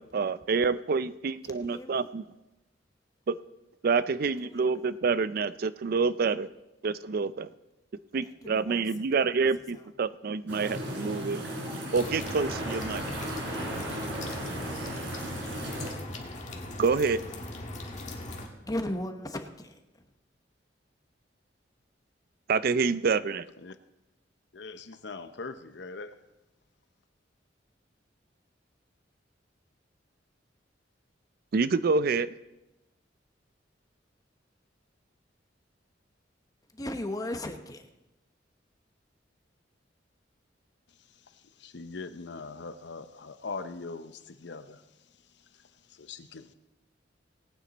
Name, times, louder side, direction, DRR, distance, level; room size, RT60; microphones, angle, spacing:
voice 1, 0.0-2.2 3.3-3.4 3.8-6.5 6.8-7.5 8.1-11.5 11.9-13.0 16.8-17.2 22.5-23.4 31.5-32.3, right 4 dB, 55° right, 15 dB, 0.4 m, -27 dB
voice 2, 1.4-2.1 4.4-4.8 8.2-9.1 9.7-9.9 18.6-19.8 36.7-37.9, left 1 dB, 20° left, 7 dB, 1.0 m, -37 dB
sound 1, 10.5-15.9, right 1 dB, 85° right, 4.2 m, -36 dB
sound 2, 11.9-18.5, left 1 dB, 40° left, 1.6 m, -40 dB
voice 3, 24.5-26.2 40.9-46.5, left 4 dB, 70° left, 11 dB, 0.7 m, -42 dB
18.5 x 9.3 x 4.1 m, 0.97 s
head